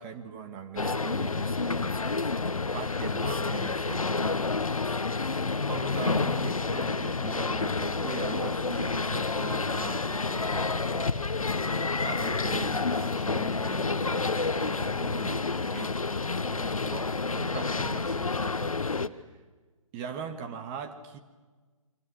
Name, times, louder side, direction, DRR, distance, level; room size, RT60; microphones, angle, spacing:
voice 1, 0.0-2.5 2.7-4.9 5.7-11.2 12.0-16.0 16.5-18.8 19.1-19.4 19.9-21.2, right 6 dB, 25° right, 8 dB, 1.7 m, -41 dB
sound 1, 0.8-19.1, left 4 dB, 75° left, 1.1 m, -29 dB
28.0 x 25.0 x 6.4 m, 1.3 s
figure-of-eight pair, 125°, 18 cm